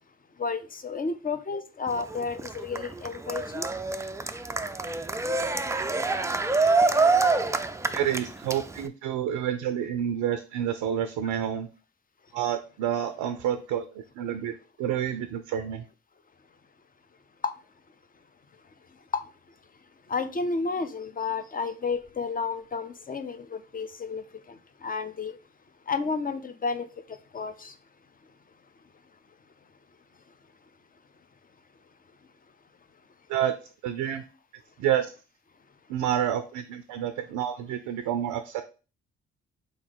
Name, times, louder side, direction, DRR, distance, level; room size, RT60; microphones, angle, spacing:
voice 1, 0.4-3.7 17.4-17.5 19.1-19.2 20.1-25.4 25.9-26.9 27.3-27.7, left 4 dB, 25° left, 9 dB, 0.7 m, -31 dB
Cheering, 1.9-8.9, right 3 dB, 10° right, 0.4 m, -26 dB
voice 2, 7.9-11.7 12.3-15.8 33.3-33.5 33.8-34.2 34.8-35.1 35.9-38.6, right 10 dB, 70° right, 9 dB, 0.5 m, -29 dB
3.9 x 3.1 x 4.0 m, 0.33 s
hypercardioid pair, 45°, 32 cm